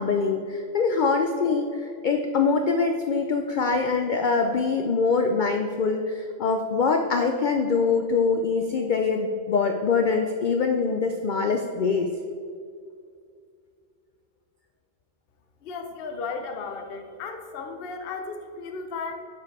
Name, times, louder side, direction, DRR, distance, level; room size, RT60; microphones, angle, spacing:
voice 1, 0.0-12.1, left 4 dB, 80° left, 5 dB, 0.4 m, -24 dB
voice 2, 15.6-19.2, left 4 dB, 55° left, 5 dB, 0.8 m, -35 dB
7.4 x 4.7 x 4.6 m, 2.3 s
omnidirectional pair, 1.4 m